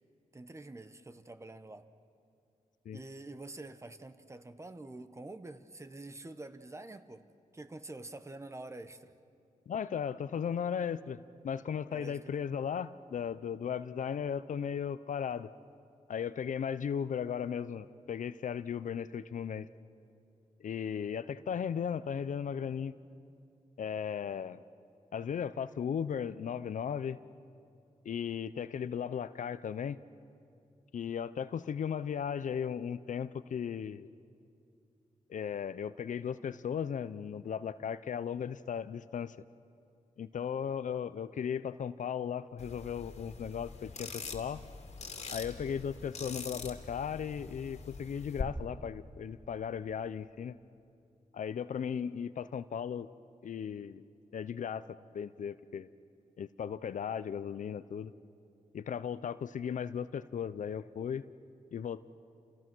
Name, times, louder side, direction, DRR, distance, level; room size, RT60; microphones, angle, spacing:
voice 1, 0.3-1.9 2.9-7.2 7.5-9.1 11.9-12.5, right 2 dB, 20° right, 10 dB, 1.1 m, -47 dB
voice 2, 9.7-15.5 16.1-19.7 20.6-22.9 23.8-24.6 25.1-27.2 28.0-30.0 30.9-34.1 35.3-39.4 40.2-44.6 45.3-50.6 51.3-53.1 53.4-54.0 54.3-55.9 56.4-58.1 58.7-61.2 61.7-62.0, left 7 dB, 70° left, 14 dB, 0.6 m, -36 dB
sound 1, 42.6-48.4, left 4 dB, 55° left, 2.4 m, -44 dB
30.0 x 28.5 x 6.2 m, 2.5 s
wide cardioid pair, 100°, 13 cm